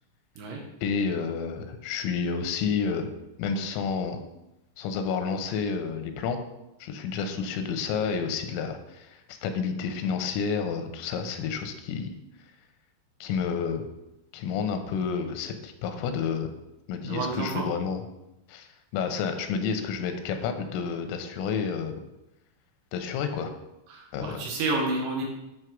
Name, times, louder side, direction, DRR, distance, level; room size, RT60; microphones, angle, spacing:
voice 1, 0.8-3.1 3.4-4.2 4.8-6.4 6.8-12.1 13.2-13.8 14.3-16.5 16.9-18.0 18.5-22.0 22.9-23.5 24.1-24.5, left 6 dB, 85° left, 7 dB, 3.4 m, -30 dB
voice 2, 17.1-17.7 23.9-25.2, right 3 dB, 75° right, -1 dB, 2.9 m, -30 dB
8.9 x 3.2 x 5.9 m, 0.93 s
omnidirectional pair, 5.8 m